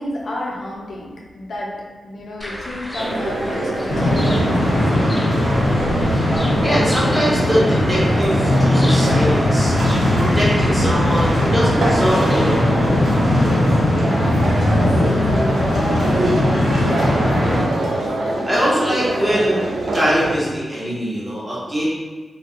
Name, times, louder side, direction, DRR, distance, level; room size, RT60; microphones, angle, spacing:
voice 1, 0.0-1.7 2.0-5.4 13.9-17.5, left 1 dB, 70° left, -4 dB, 0.6 m, -31 dB
sound 1, 2.4-12.6, equal, 15° left, 0.5 m, -34 dB
sound 2, 3.0-20.4, right 1 dB, 70° right, 0.4 m, -25 dB
sound 3, 3.9-17.7, left 1 dB, 55° left, 1.1 m, -18 dB
voice 2, 6.6-9.7 10.2-13.0 18.4-19.6 19.9-21.8, equal, 20° right, -7 dB, 1.2 m, -22 dB
2.5 x 2.3 x 2.6 m, 1.4 s
supercardioid pair, 40°, 0 cm